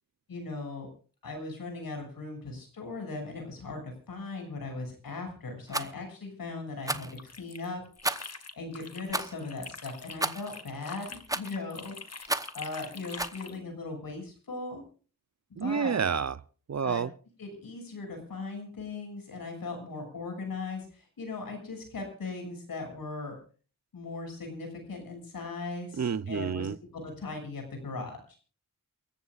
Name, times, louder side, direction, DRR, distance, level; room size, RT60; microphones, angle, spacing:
voice 1, 0.3-0.9 1.2-7.8 8.5-14.8 15.5-15.9 16.8-17.0 17.4-23.3 23.9-28.4, left 3 dB, 85° left, 6.8 m, -39 dB
Rattle, 5.7-5.9 6.8-7.1 8.0-8.4 9.1-9.3 10.2-10.5 11.3-11.6 12.3-12.6 13.2-13.4, right 1 dB, 10° right, 0.9 m, -32 dB
sound 1, 7.0-9.1 9.4-13.6, left 4 dB, 45° left, 1.8 m, -45 dB
voice 2, 15.6-16.3 16.7-17.1 26.0-26.8, right 6 dB, 50° right, 0.7 m, -29 dB
29.0 x 14.0 x 2.5 m
wide cardioid pair, 75°, 34 cm